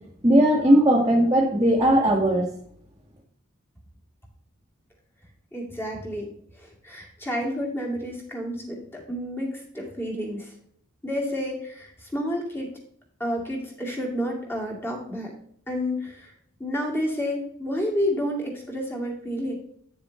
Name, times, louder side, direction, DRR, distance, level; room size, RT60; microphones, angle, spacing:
voice 1, 0.2-2.5, right 1 dB, 15° right, -5 dB, 1.4 m, -18 dB
voice 2, 5.5-10.5 11.0-12.7 13.2-15.3 15.7-16.3 16.6-19.5, equal, 10° left, -1 dB, 2.3 m, -30 dB
9.2 x 7.0 x 3.2 m, 0.66 s
head